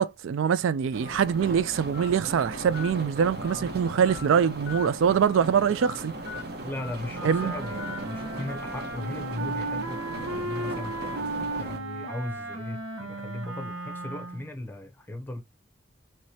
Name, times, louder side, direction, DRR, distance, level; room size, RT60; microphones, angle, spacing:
voice 1, 0.0-6.1 7.2-7.5, right 7 dB, 75° right, 0.3 m, -24 dB
sound 1, 0.9-11.8, right 2 dB, 50° right, 1.0 m, -38 dB
Telephone, 1.0-1.2 1.9-2.1 2.7-2.9 3.4-3.6 4.1-4.3 4.7-4.9 5.3-5.4 5.8-6.0 6.3-6.4 6.8-7.0 7.3-7.5 7.8-8.0, left 8 dB, 65° left, 0.3 m, -41 dB
voice 2, 6.6-11.0 11.6-15.4, left 1 dB, 10° left, 0.7 m, -37 dB
Wind instrument woodwind instrument, 7.1-14.5, right 2 dB, 90° right, 1.0 m, -35 dB
4.7 x 3.1 x 2.8 m
head